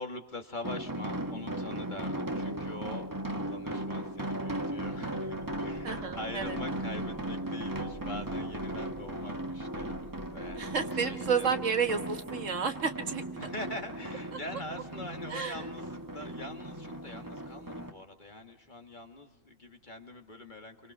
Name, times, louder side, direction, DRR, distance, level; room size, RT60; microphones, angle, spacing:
voice 1, 0.0-11.5 13.4-15.8 16.1-20.9, left 2 dB, 35° left, 4 dB, 2.0 m, -44 dB
sound 1, 0.6-17.9, right 1 dB, 15° right, 1.5 m, -37 dB
sound 2, 4.7-12.4 12.7-12.8, right 1 dB, ahead, 1.9 m, -52 dB
voice 2, 5.8-6.6 10.6-13.2 15.3-15.6, right 6 dB, 70° right, 6 dB, 1.9 m, -31 dB
28.0 x 24.5 x 5.5 m, 0.98 s
omnidirectional pair, 1.4 m